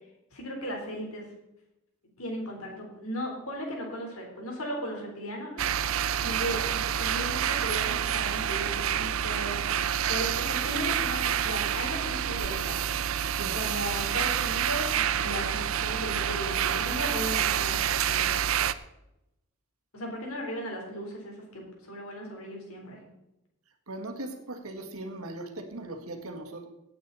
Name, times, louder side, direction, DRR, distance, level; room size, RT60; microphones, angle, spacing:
voice 1, 0.3-1.3 2.2-5.6 6.2-9.6 10.1-12.8 13.5-18.3 19.9-23.0, equal, 85° left, 0 dB, 3.8 m, -36 dB
sound 1, 5.6-18.7, right 9 dB, 70° right, 0.5 m, -28 dB
voice 2, 23.9-26.7, right 2 dB, 90° right, 4 dB, 1.8 m, -39 dB
17.0 x 8.7 x 4.1 m, 0.89 s
head